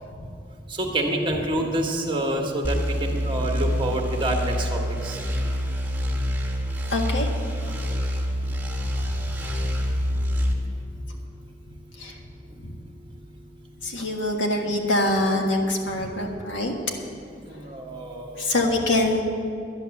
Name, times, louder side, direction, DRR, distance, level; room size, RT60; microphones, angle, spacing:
voice 1, 0.7-5.2 17.5-18.7, right 1 dB, 25° right, 2 dB, 1.4 m, -27 dB
sound 1, 2.6-10.5, equal, 10° right, 1.6 m, -26 dB
voice 2, 6.9-7.3 7.5-7.7 9.0-9.1 9.4-9.7 10.9-11.0 12.0-12.2 12.6-12.7 13.8-16.7 17.6-17.7 18.4-19.2, left 1 dB, 85° left, 2 dB, 1.7 m, -25 dB
11.0 x 10.5 x 7.1 m, 2.5 s
head